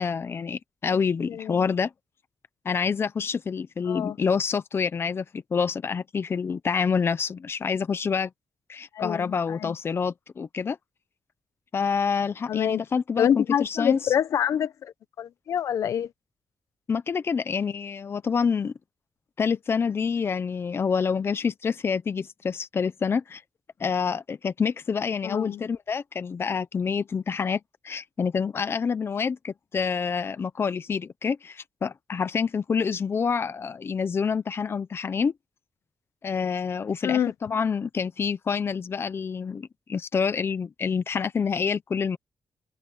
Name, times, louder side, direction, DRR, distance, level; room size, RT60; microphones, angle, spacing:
voice 1, 0.0-1.9 2.6-8.3 8.7-10.8 11.7-14.1 16.9-18.7 19.4-23.4 23.8-35.3 36.2-42.2, left 6 dB, 50° left, 0.9 m, -27 dB
voice 2, 1.3-1.6 3.9-4.2 8.9-9.7 12.5-12.8 13.2-16.1 25.2-25.6 37.0-37.3, left 9 dB, 80° left, 1.2 m, -26 dB
cardioid pair, 80°, 5 cm